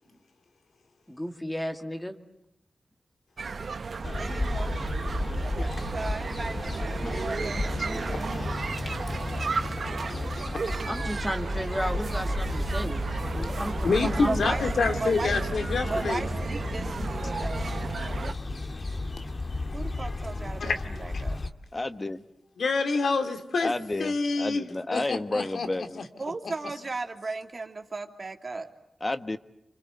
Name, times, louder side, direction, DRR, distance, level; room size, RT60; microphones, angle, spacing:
voice 1, 1.1-2.1 7.1-7.2 10.9-13.0 13.3-14.6, equal, 10° left, 4 dB, 2.3 m, -33 dB
sound 1, 3.4-18.3, right 4 dB, 70° right, 1.0 m, -34 dB
sound 2, 4.0-21.5, left 2 dB, 45° left, 2.1 m, -33 dB
voice 2, 4.2-5.0 5.9-8.1 13.9-15.4 15.9-17.7 19.7-21.4 26.2-28.7, right 3 dB, 50° right, 5 dB, 2.7 m, -36 dB
voice 3, 13.8-16.2 20.6-20.8 21.1-21.2 22.6-23.7 24.0-26.0, left 4 dB, 80° left, 7 dB, 2.3 m, -27 dB
voice 4, 21.7-22.2 23.6-26.0 29.0-29.4, left 2 dB, 30° left, 11 dB, 1.4 m, -31 dB
28.0 x 26.0 x 7.9 m, 0.82 s
cardioid pair, 60°, 0 cm